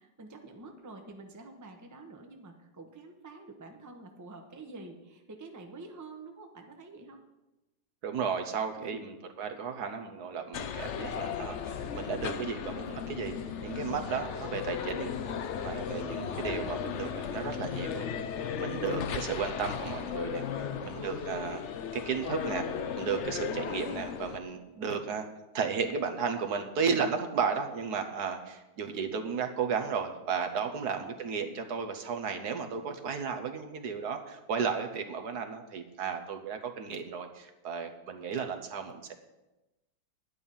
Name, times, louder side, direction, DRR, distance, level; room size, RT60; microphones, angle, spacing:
voice 1, 0.0-7.2 8.8-9.1 13.9-14.3 20.6-21.2 30.6-31.0, right 3 dB, 15° right, 3 dB, 0.9 m, -48 dB
voice 2, 8.0-13.4 13.6-18.1 18.6-21.6 21.9-22.7 23.0-25.3 25.5-39.1, right 6 dB, 65° right, 6 dB, 1.4 m, -34 dB
sound 1, 10.5-24.4, left 7 dB, 65° left, 0.7 m, -36 dB
10.5 x 9.8 x 5.5 m, 1.0 s
omnidirectional pair, 1.9 m